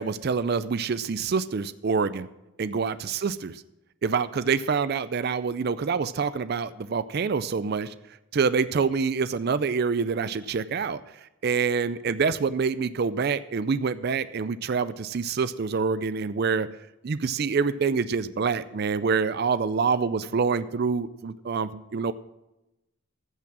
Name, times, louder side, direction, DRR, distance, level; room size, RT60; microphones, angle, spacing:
voice 1, 0.0-2.3 2.6-3.6 4.0-7.9 8.3-11.0 11.4-16.7 17.0-22.1, right 5 dB, 45° right, 14 dB, 0.4 m, -26 dB
14.5 x 6.1 x 6.1 m, 0.95 s
head